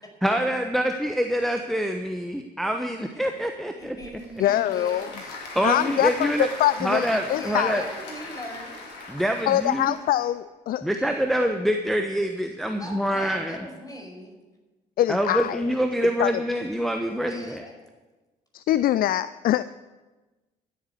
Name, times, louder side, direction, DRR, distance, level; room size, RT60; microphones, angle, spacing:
voice 1, 0.2-4.0 5.5-6.5 6.8-7.8 9.1-9.9 10.8-13.7 15.1-17.6, equal, ahead, 5 dB, 1.1 m, -25 dB
Applause / Crowd, 3.8-10.3, left 3 dB, 75° left, 2.3 m, -40 dB
voice 2, 3.8-5.3 7.3-8.8 10.9-11.5 12.8-14.4 17.3-17.7, equal, 15° left, 2 dB, 5.4 m, -40 dB
voice 3, 4.4-5.1 5.6-7.8 9.5-10.9 15.0-15.6 16.2-16.4 18.5-19.7, left 13 dB, 45° left, 16 dB, 0.4 m, -24 dB
13.0 x 8.5 x 8.2 m, 1.2 s
figure-of-eight pair, 45°, 21 cm